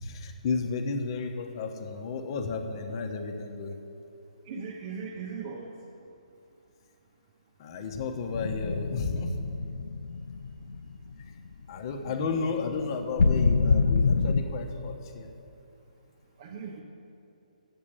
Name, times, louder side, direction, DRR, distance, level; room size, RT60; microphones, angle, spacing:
voice 1, 0.0-3.8 7.6-9.4 11.7-15.3, left 4 dB, 35° left, 4 dB, 1.0 m, -32 dB
voice 2, 4.5-5.7 11.8-12.2 16.4-16.8, right 5 dB, 40° right, 1 dB, 0.8 m, -39 dB
sound 1, 8.3-11.1 11.5-11.6 13.2-14.4, left 4 dB, 70° left, 0.5 m, -25 dB
7.9 x 7.4 x 8.6 m, 2.7 s
figure-of-eight pair, 140°, 4 cm